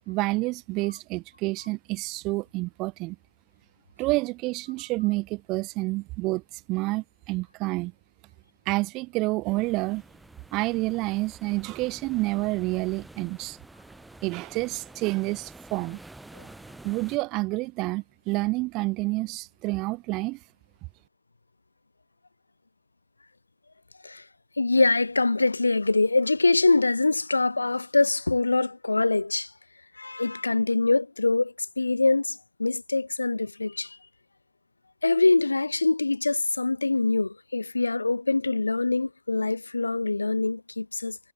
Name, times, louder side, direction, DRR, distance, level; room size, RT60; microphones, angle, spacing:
voice 1, 0.1-3.2 4.0-7.9 8.7-10.0 10.5-13.6 14.2-16.0 16.8-20.5, right 22 dB, 40° right, 0.4 m, -29 dB
sound 1, 9.6-17.2, right 2 dB, 5° right, 0.9 m, -49 dB
voice 2, 24.6-29.5 30.0-34.0 35.0-41.2, left 3 dB, 80° left, 0.5 m, -24 dB
figure-of-eight pair, 90°, 0 cm